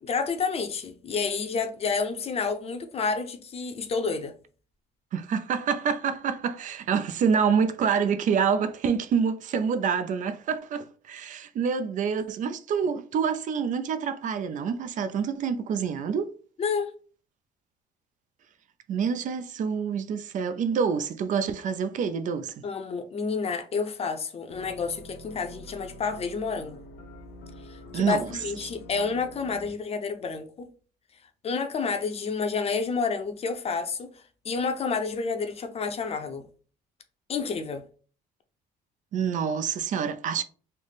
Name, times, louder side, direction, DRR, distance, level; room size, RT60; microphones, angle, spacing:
voice 1, 0.0-4.3 16.6-16.9 22.6-26.8 27.7-30.7 31.4-34.1 34.4-36.4 37.3-37.8, left 5 dB, 35° left, 0.6 m, -29 dB
voice 2, 5.1-16.3 18.9-22.6 27.9-28.3 39.1-40.4, right 6 dB, 50° right, 0.4 m, -27 dB
sound 1, 24.5-29.7, left 1 dB, 85° left, 0.7 m, -46 dB
3.3 x 2.0 x 4.0 m
cardioid pair, 110°, 17 cm